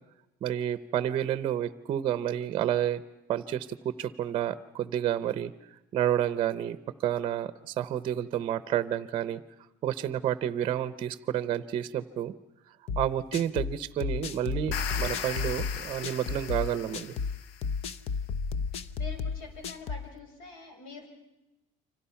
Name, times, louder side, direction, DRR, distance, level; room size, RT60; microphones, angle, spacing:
voice 1, 0.4-3.0 3.3-5.5 5.9-9.4 9.8-12.3 13.0-17.1, right 11 dB, 35° right, 14 dB, 0.8 m, -30 dB
sound 1, 12.9-20.1, left 5 dB, 40° left, 0.8 m, -33 dB
sound 2, 14.5-17.7, left 8 dB, 90° left, 1.2 m, -38 dB
voice 2, 18.7-21.1, left 4 dB, 65° left, 4 dB, 5.8 m, -45 dB
30.0 x 25.5 x 5.8 m, 1.0 s
cardioid pair, 170°, 16 cm